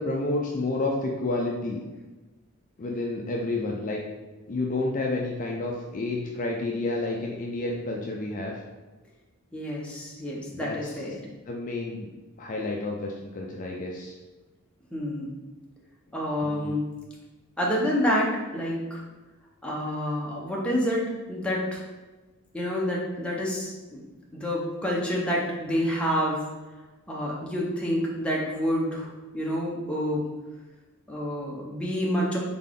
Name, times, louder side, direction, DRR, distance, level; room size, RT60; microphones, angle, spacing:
voice 1, 0.0-1.8 2.8-4.0 4.5-8.5 10.5-10.9 11.5-12.1 12.4-14.1 16.4-16.8, left 2 dB, 35° left, -1 dB, 0.4 m, -30 dB
voice 2, 9.5-11.2 14.9-15.3 16.1-16.9 17.6-19.0 19.6-21.0 21.3-21.8 22.5-24.0 24.3-26.4 27.1-30.2 31.1-32.4, equal, 5° left, -4 dB, 0.8 m, -28 dB
4.0 x 3.7 x 3.7 m, 1.2 s
head